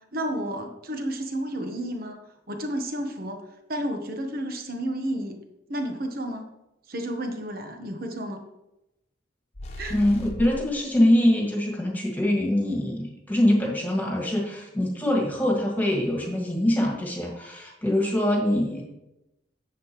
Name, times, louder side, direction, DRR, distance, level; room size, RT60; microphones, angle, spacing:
voice 1, 0.1-2.2 2.5-3.4 3.7-5.4 5.7-6.5 6.9-8.4 9.8-10.0, right 1 dB, 55° right, 4 dB, 1.2 m, -31 dB
sound 1, 9.5-10.8, equal, 35° left, 1.1 m, -37 dB
voice 2, 9.9-18.8, left 1 dB, 10° left, -1 dB, 2.0 m, -23 dB
10.5 x 7.8 x 3.2 m, 0.89 s
head